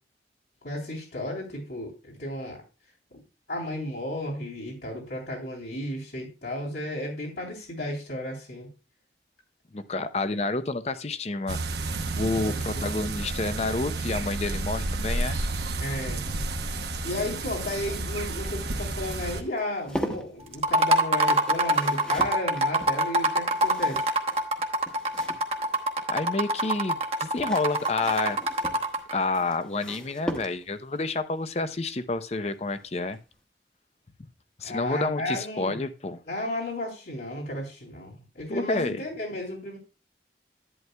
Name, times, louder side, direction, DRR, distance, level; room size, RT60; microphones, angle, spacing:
voice 1, 0.6-2.6 3.1-3.2 3.5-8.7 12.3-12.9 15.8-16.2 17.0-24.1 34.6-35.8 36.3-39.8, left 1 dB, 75° left, -3 dB, 3.3 m, -33 dB
voice 2, 9.7-11.7 12.2-15.4 26.1-28.4 29.1-33.2 34.6-36.2 38.5-39.0, left 3 dB, 35° left, 11 dB, 0.6 m, -29 dB
sound 1, 11.5-19.4, right 2 dB, 70° right, 1.1 m, -31 dB
sound 2, 19.4-25.9 27.0-31.0 32.6-32.9 33.2-33.3, equal, 5° left, 0.9 m, -40 dB
sound 3, 20.5-29.1, right 1 dB, 35° right, 1.0 m, -24 dB
11.0 x 9.2 x 2.2 m, 0.31 s
head